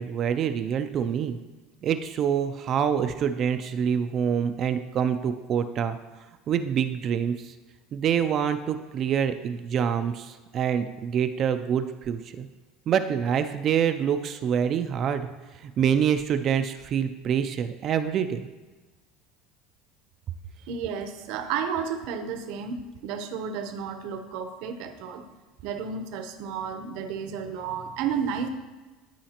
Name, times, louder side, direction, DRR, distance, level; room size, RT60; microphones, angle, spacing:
voice 1, 0.0-1.4 1.8-6.0 6.5-7.5 7.9-12.5 12.9-15.3 15.6-18.5, right 8 dB, 35° right, 9 dB, 0.3 m, -26 dB
voice 2, 20.7-25.2 25.6-28.5, right 7 dB, 60° right, 7 dB, 0.7 m, -32 dB
12.0 x 4.9 x 2.9 m, 1.2 s
cardioid pair, 160°, 0 cm